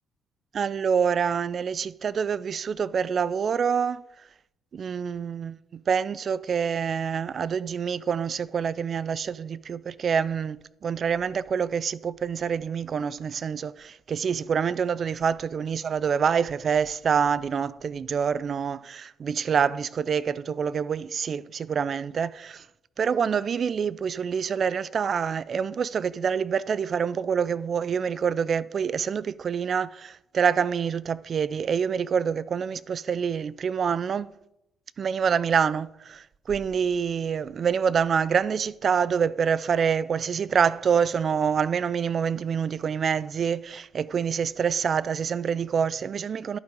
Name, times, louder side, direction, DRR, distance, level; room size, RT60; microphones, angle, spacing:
voice 1, 0.5-4.0 4.7-22.7 23.0-34.3 35.0-46.6, right 7 dB, 50° right, 0.4 m, -26 dB
10.5 x 5.5 x 5.1 m
cardioid pair, 90°, 0 cm